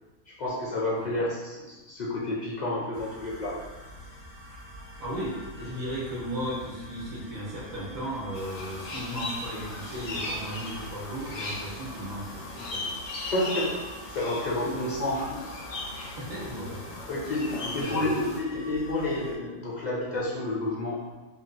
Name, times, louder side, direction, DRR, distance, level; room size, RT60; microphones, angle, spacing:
voice 1, 0.4-3.5 13.3-13.7 14.1-15.3 17.1-21.0, left 1 dB, 55° left, -6 dB, 0.4 m, -29 dB
sound 1, 2.9-19.4, right 1 dB, 90° left, 1.3 m, -46 dB
voice 2, 5.0-12.9 14.7-14.8 16.2-17.0 17.6-18.0, equal, 65° right, -6 dB, 1.4 m, -35 dB
sound 2, 8.3-18.4, left 2 dB, 70° left, 1.0 m, -38 dB
3.8 x 2.5 x 2.2 m, 1.2 s
omnidirectional pair, 1.6 m